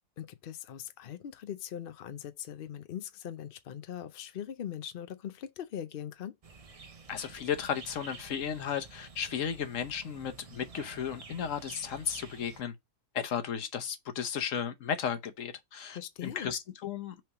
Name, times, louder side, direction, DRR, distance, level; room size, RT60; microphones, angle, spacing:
voice 1, 0.2-6.4 15.9-16.5, left 10 dB, 90° left, 0.4 m, -41 dB
sound 1, 6.4-12.6, right 4 dB, 65° right, 0.3 m, -50 dB
voice 2, 7.1-12.7 13.1-17.2, left 8 dB, 55° left, 1.1 m, -34 dB
6.0 x 3.4 x 5.9 m
omnidirectional pair, 1.7 m